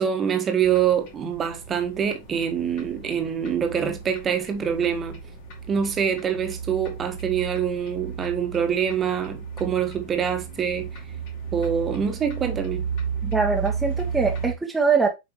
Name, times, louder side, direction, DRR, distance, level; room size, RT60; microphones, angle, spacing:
voice 1, 0.0-5.2 5.7-10.9 11.5-12.9, right 8 dB, 25° right, 1.3 m, -25 dB
sound 1, 0.6-14.5, right 6 dB, 45° left, 2.6 m, -34 dB
voice 2, 13.2-15.1, right 4 dB, 10° right, 1.1 m, -23 dB
8.0 x 4.9 x 3.1 m
figure-of-eight pair, 90°, 0 cm